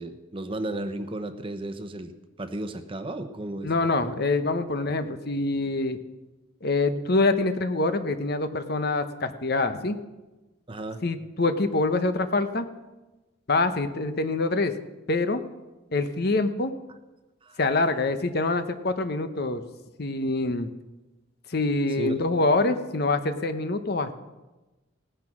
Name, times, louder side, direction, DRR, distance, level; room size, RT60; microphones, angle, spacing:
voice 1, 0.0-2.1 2.4-3.7 10.7-11.0 17.4-17.6 22.0-22.1, right 1 dB, 25° right, 8 dB, 0.9 m, -34 dB
voice 2, 3.6-6.0 6.6-10.0 11.0-12.7 13.5-14.7 15.1-15.4 15.9-16.7 17.6-19.6 20.0-20.7 21.5-24.1, left 2 dB, 50° left, 9 dB, 0.9 m, -25 dB
17.0 x 10.0 x 6.0 m, 1.1 s
head